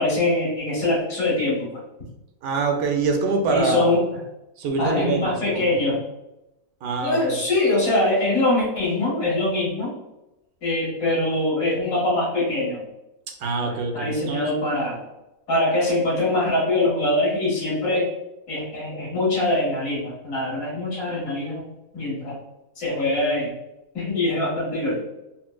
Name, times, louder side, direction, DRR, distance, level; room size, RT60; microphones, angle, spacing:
voice 1, 0.0-1.7 3.5-4.0 4.8-6.0 7.0-9.9 10.6-12.8 13.6-15.0 15.5-18.1 18.5-21.7 21.9-22.4 22.8-23.5 23.9-25.0, left 2 dB, 65° left, -8 dB, 1.9 m, -23 dB
voice 2, 2.4-3.9 4.6-5.7 6.8-7.4 13.4-14.5, right 3 dB, 75° right, 3 dB, 1.0 m, -25 dB
4.4 x 2.1 x 2.2 m, 0.93 s
omnidirectional pair, 1.6 m